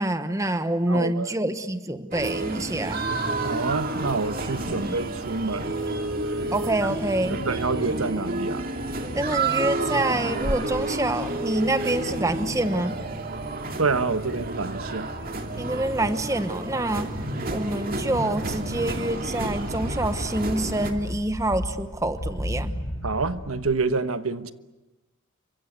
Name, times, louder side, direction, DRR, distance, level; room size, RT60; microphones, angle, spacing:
voice 1, 0.0-3.0 4.7-5.0 6.5-7.4 9.1-13.0 15.6-17.1 17.5-22.7, right 1 dB, 15° right, 10 dB, 1.0 m, -26 dB
voice 2, 0.9-1.3 3.4-5.7 7.3-8.7 13.8-15.1 23.0-24.5, right 4 dB, 85° right, 11 dB, 1.2 m, -27 dB
sound 1, 2.1-20.9, right 2 dB, 45° right, 2.4 m, -30 dB
sound 2, 19.3-23.8, equal, 70° left, 6.6 m, -34 dB
28.5 x 24.5 x 8.1 m, 1.0 s
head